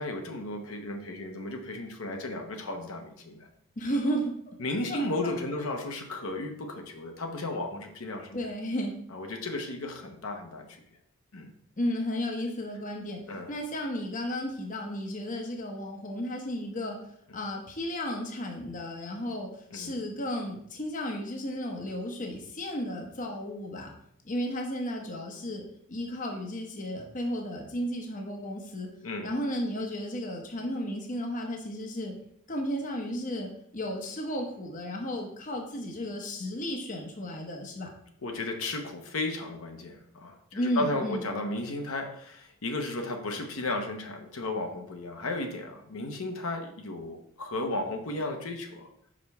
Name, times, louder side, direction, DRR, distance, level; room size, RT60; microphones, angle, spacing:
voice 1, 0.0-3.5 4.6-8.4 9.1-10.8 11.3-11.5 13.3-13.5 19.7-19.9 29.0-29.3 38.2-48.9, left 2 dB, 70° left, 3 dB, 0.8 m, -34 dB
voice 2, 3.8-4.4 4.9-5.3 8.3-8.9 11.8-13.2 13.5-17.1 17.3-23.9 24.2-28.9 29.2-32.2 32.5-37.9 40.5-41.2, equal, 35° left, 2 dB, 0.8 m, -33 dB
5.5 x 5.0 x 3.5 m, 0.71 s
head